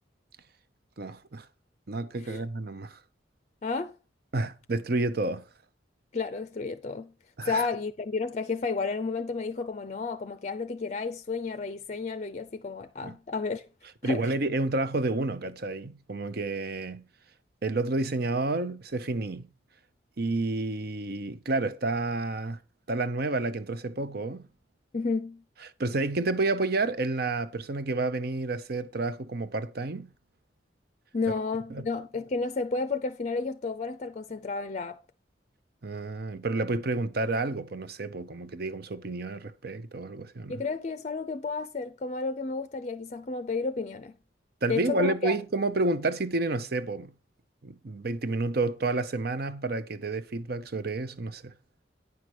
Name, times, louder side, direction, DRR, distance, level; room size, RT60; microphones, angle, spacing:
voice 1, 1.0-1.5 1.9-3.0 4.3-5.4 7.4-7.7 13.0-13.2 14.0-17.0 17.6-19.5 20.2-22.6 22.9-24.5 25.8-30.1 31.7-31.8 35.8-40.6 44.6-47.1 47.6-51.5, right 2 dB, 55° right, 0.8 m, -30 dB
voice 2, 3.6-3.9 6.1-7.1 7.5-13.6 14.0-14.3 24.9-25.4 31.1-35.0 40.5-44.1 44.7-45.3, left 4 dB, 40° left, 0.5 m, -32 dB
9.6 x 5.8 x 4.7 m
head